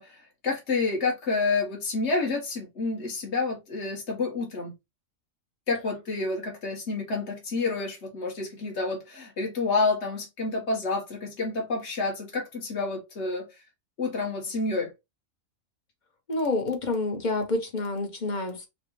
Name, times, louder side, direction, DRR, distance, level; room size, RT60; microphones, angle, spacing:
voice 1, 0.0-4.7 5.7-13.5 14.0-14.9, left 3 dB, 55° left, 1.8 m, -29 dB
voice 2, 16.3-18.7, left 2 dB, 35° left, 1.1 m, -28 dB
5.1 x 2.4 x 3.2 m
omnidirectional pair, 1.4 m